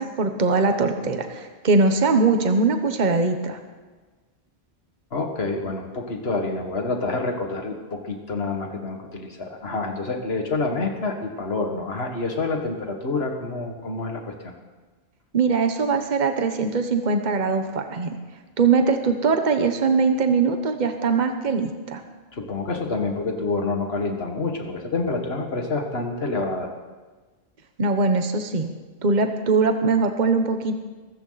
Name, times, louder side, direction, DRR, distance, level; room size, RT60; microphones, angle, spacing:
voice 1, 0.0-3.6 15.3-18.1 18.6-22.0 27.8-28.7 29.0-30.8, right 4 dB, 45° right, 6 dB, 1.2 m, -21 dB
voice 2, 5.1-14.5 22.3-26.7, left 3 dB, 65° left, 3 dB, 2.1 m, -27 dB
23.0 x 14.5 x 4.1 m, 1.3 s
omnidirectional pair, 1.1 m